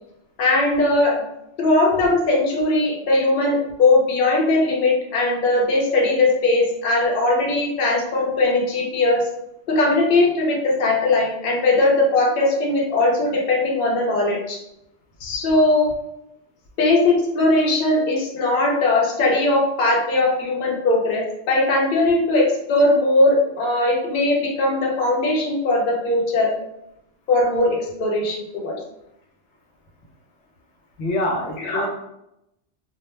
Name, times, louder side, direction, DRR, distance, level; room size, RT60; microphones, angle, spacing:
voice 1, 0.4-1.2 1.6-9.3 9.7-14.6 15.2-15.9 16.8-26.5 27.3-28.7 31.6-31.9, left 2 dB, 55° left, -1 dB, 0.8 m, -19 dB
voice 2, 31.0-31.9, left 1 dB, 90° left, 0 dB, 0.9 m, -25 dB
2.3 x 2.1 x 3.1 m, 0.83 s
omnidirectional pair, 1.1 m